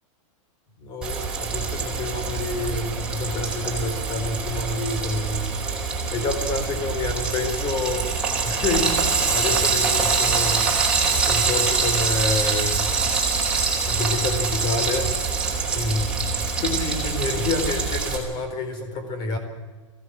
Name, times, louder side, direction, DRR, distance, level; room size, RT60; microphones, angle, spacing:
voice 1, 0.8-5.6 6.1-10.8 11.1-12.9 13.9-15.2 15.7-19.4, left 3 dB, 25° left, 7 dB, 4.2 m, -28 dB
Frying (food), 1.0-18.2, right 5 dB, 5° right, 4.3 m, -24 dB
23.5 x 16.5 x 7.6 m, 1.3 s
supercardioid pair, 160°, 17 cm